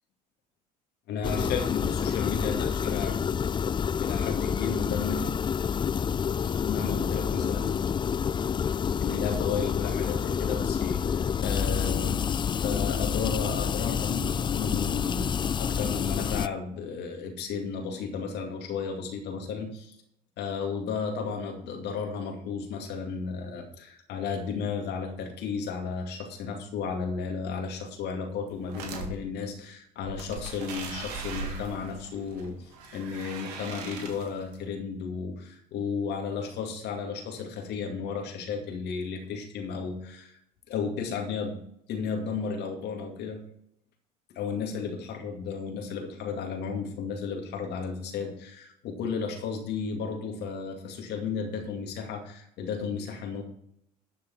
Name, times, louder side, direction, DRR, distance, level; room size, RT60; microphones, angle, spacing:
voice 1, 1.1-3.2 4.0-5.2 6.7-7.7 8.7-20.0 20.4-40.4 40.7-41.5 41.9-43.4 44.3-53.4, left 5 dB, 55° left, 3 dB, 2.3 m, -34 dB
sound 1, 1.2-16.5, left 7 dB, 25° left, 0.4 m, -28 dB
sound 2, 28.5-29.1 30.0-34.5, right 4 dB, 70° right, 1.9 m, -39 dB
12.5 x 6.1 x 5.6 m, 0.71 s
hypercardioid pair, 60°, 21 cm